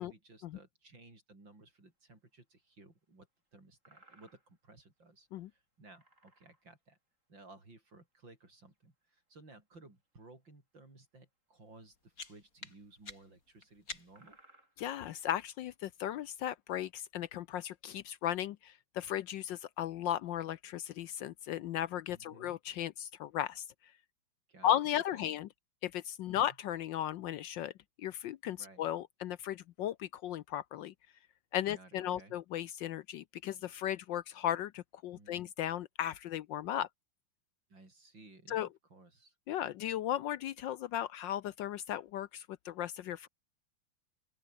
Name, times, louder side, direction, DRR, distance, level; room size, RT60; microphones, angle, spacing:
voice 1, 0.0-3.3 3.5-7.0 7.3-14.4 22.1-22.6 24.5-24.8 25.1-25.3 26.3-26.6 28.6-28.9 31.7-32.4 35.1-35.5 37.7-39.3, right 2 dB, 60° right, 7.3 m, -58 dB
sound 1, 1.7-1.8 3.4-3.5 3.8-4.6 5.0-5.1 5.9-6.8 7.9-8.0 8.4-8.8 10.0-10.1 11.7-11.9 12.2-12.4 13.0-13.3 13.7-13.8 14.2-14.9 16.0-16.2, right 2 dB, 35° right, 6.2 m, -64 dB
sound 2, 11.7-14.4, left 3 dB, 40° left, 3.7 m, -50 dB
voice 2, 14.8-23.7 24.6-25.5 25.8-27.7 28.0-30.9 31.5-36.9 38.5-38.7 39.5-43.3, left 11 dB, 70° left, 1.2 m, -36 dB
open air
omnidirectional pair, 2.3 m